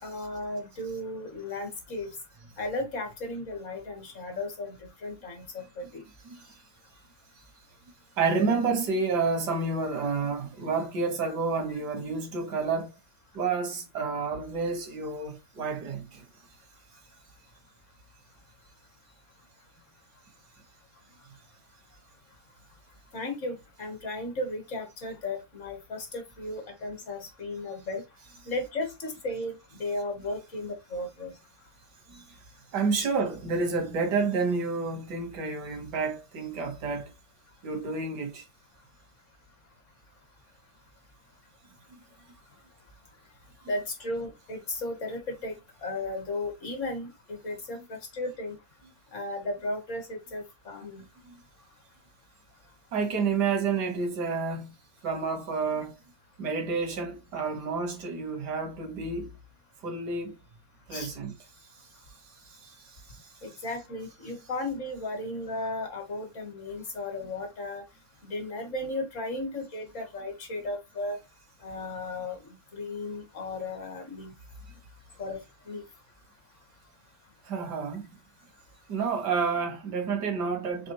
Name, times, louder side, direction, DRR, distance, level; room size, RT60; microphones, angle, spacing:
voice 1, 0.0-2.1 2.6-6.0 23.1-28.0 28.5-31.3 33.0-33.1 43.6-48.6 49.1-51.0 60.9-61.1 63.4-67.8 68.2-71.2 71.6-72.4 72.7-74.3 75.2-75.4 75.7-75.8, left 2 dB, 50° left, 1.5 m, -35 dB
voice 2, 8.2-12.9 13.3-16.2 32.1-32.2 32.7-37.1 37.6-38.4 41.9-42.0 51.3-51.4 52.9-54.7 55.0-56.0 56.4-59.3 59.8-60.4 60.9-61.4 62.5-63.3 77.4-78.1 78.9-80.9, right 4 dB, 85° right, 1.8 m, -30 dB
4.2 x 3.4 x 3.0 m
omnidirectional pair, 1.8 m